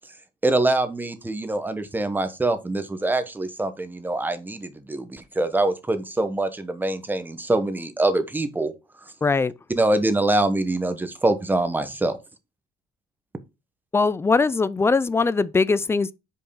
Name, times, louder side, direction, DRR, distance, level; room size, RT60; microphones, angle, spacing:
voice 1, 0.4-8.7 9.8-12.2, right 2 dB, 10° right, 0.9 m, -24 dB
voice 2, 9.2-9.5 13.9-16.1, left 4 dB, 15° left, 0.3 m, -21 dB
5.3 x 4.7 x 5.6 m
cardioid pair, 120°, 16 cm